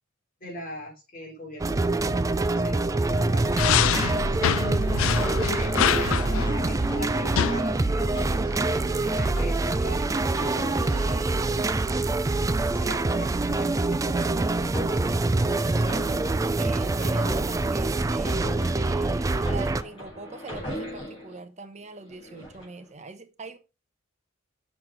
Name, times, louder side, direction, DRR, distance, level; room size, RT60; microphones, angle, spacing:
voice 1, 0.4-3.8 4.8-4.9 5.4-10.2 10.8-11.6 12.7-14.3, left 1 dB, 45° left, 3.2 m, -41 dB
sound 1, 1.6-19.8, right 2 dB, 15° right, 0.3 m, -25 dB
sound 2, 3.1-4.0 4.6-11.9 13.8-21.4 22.0-22.8, equal, 25° left, 4.1 m, -40 dB
sound 3, 3.5-7.6, left 9 dB, 70° left, 0.4 m, -26 dB
voice 2, 15.6-16.1 16.4-23.6, right 3 dB, 35° right, 0.9 m, -43 dB
6.4 x 5.7 x 4.5 m
head